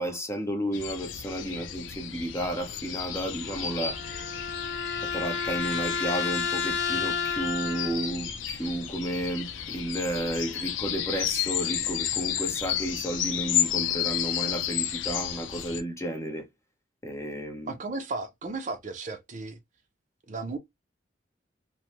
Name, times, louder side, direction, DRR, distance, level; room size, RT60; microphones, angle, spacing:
voice 1, 0.0-4.0 5.0-16.4 17.0-17.7, right 1 dB, 15° left, 0.8 m, -32 dB
sound 1, 0.7-15.8, left 10 dB, 85° left, 0.5 m, -32 dB
sound 2, 3.4-8.1, left 6 dB, 70° left, 0.9 m, -31 dB
voice 2, 17.7-19.6 20.3-20.6, right 3 dB, 40° right, 0.5 m, -35 dB
3.0 x 2.1 x 2.9 m
head